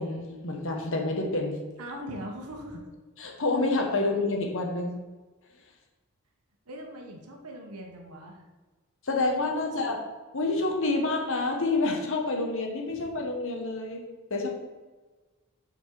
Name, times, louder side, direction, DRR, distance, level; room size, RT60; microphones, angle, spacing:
voice 1, 0.0-1.6 3.2-5.0 9.0-10.0 10.3-14.0 14.3-14.5, left 2 dB, 60° left, 2 dB, 1.3 m, -28 dB
voice 2, 1.8-2.9 6.7-8.4 9.6-10.0 12.9-13.1, equal, 90° right, 1 dB, 1.2 m, -41 dB
7.3 x 4.5 x 4.6 m, 1.3 s
head